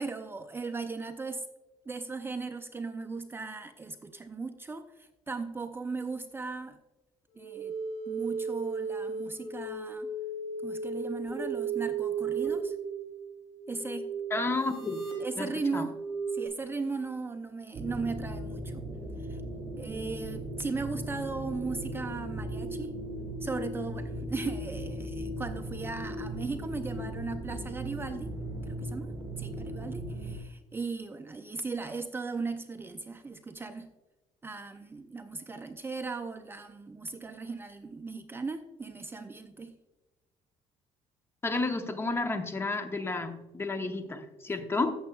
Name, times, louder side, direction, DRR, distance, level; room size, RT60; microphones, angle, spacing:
voice 1, 0.0-1.4 1.9-6.8 7.4-7.8 8.1-10.1 10.6-12.8 13.7-14.1 15.2-16.0 16.3-18.8 19.2-19.4 19.8-22.9 23.4-28.3 28.6-29.1 29.4-33.9 34.4-39.8, right 4 dB, 20° right, 7 dB, 0.5 m, -37 dB
sound 1, 7.3-16.5, right 5 dB, 85° left, 2.8 m, -35 dB
voice 2, 14.3-15.0 15.4-15.8 41.4-44.9, left 3 dB, 20° left, 8 dB, 0.8 m, -31 dB
sound 2, 17.7-30.4, right 1 dB, 40° right, 1.9 m, -37 dB
15.0 x 7.0 x 2.3 m, 1.1 s
cardioid pair, 120°, 12 cm